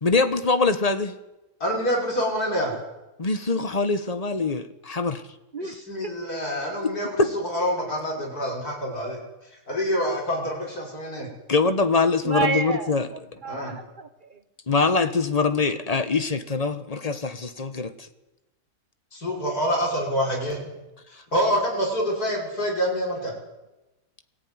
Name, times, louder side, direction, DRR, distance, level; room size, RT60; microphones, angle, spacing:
voice 1, 0.0-1.2 3.2-5.2 7.2-7.3 11.5-13.1 14.7-18.1, left 4 dB, 25° left, 9 dB, 1.2 m, -23 dB
voice 2, 1.6-2.7 5.6-9.2 9.7-11.3 13.5-13.7 19.1-20.6 21.1-23.3, equal, 75° left, -2 dB, 6.2 m, -26 dB
voice 3, 5.5-6.1 12.2-14.4, right 5 dB, 35° right, 10 dB, 1.4 m, -30 dB
22.0 x 14.5 x 9.7 m, 1.0 s
omnidirectional pair, 1.6 m